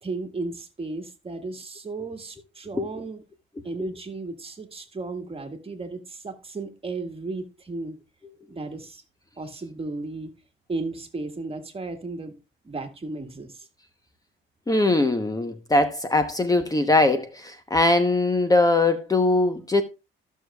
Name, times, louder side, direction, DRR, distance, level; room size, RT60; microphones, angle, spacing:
voice 1, 0.0-3.2 3.6-8.0 8.5-9.0 9.4-10.3 10.7-12.3 12.6-13.7, right 3 dB, 30° right, 1.7 m, -34 dB
voice 2, 14.7-19.8, left 2 dB, 20° left, 1.0 m, -21 dB
14.5 x 6.5 x 2.3 m
cardioid pair, 90°, 20 cm